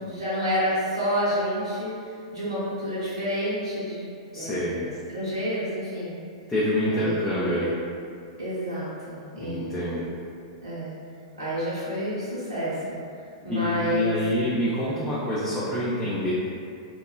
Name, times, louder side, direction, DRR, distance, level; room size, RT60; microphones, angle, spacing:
voice 1, 0.1-4.0 4.3-6.2 6.9-7.2 8.4-9.8 10.6-10.9 11.4-13.0 13.4-14.2 14.6-14.7 14.9-15.0, equal, 70° right, -11 dB, 0.8 m, -29 dB
voice 2, 4.3-4.8 6.5-7.8 9.3-10.1 13.5-16.3, left 1 dB, 10° left, -10 dB, 0.4 m, -26 dB
2.8 x 2.2 x 2.2 m, 2.4 s
figure-of-eight pair, 100°, 3 cm